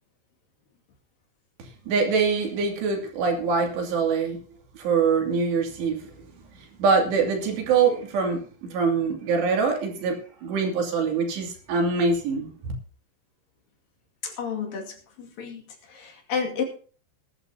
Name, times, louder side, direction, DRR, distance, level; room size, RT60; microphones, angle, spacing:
voice 1, 1.9-4.4 4.7-6.1 6.8-12.7, right 5 dB, 90° right, 2 dB, 4.8 m, -24 dB
voice 2, 14.2-16.6, left 6 dB, 60° left, 1 dB, 3.8 m, -31 dB
20.5 x 11.5 x 2.8 m, 0.42 s
omnidirectional pair, 4.8 m